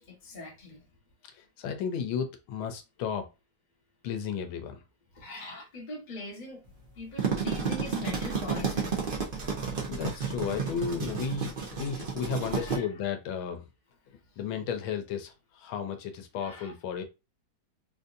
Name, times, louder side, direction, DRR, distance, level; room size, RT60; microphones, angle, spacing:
voice 1, 0.1-0.8 5.1-6.6 6.9-8.9 12.5-12.9 16.3-16.7, left 2 dB, 30° left, 1.1 m, -41 dB
voice 2, 1.6-3.2 4.0-4.8 9.9-13.6 14.4-17.0, left 7 dB, 80° left, 1.4 m, -33 dB
sound 1, 7.0-12.8, right 5 dB, 85° right, 0.4 m, -32 dB
3.9 x 2.6 x 2.5 m
omnidirectional pair, 2.2 m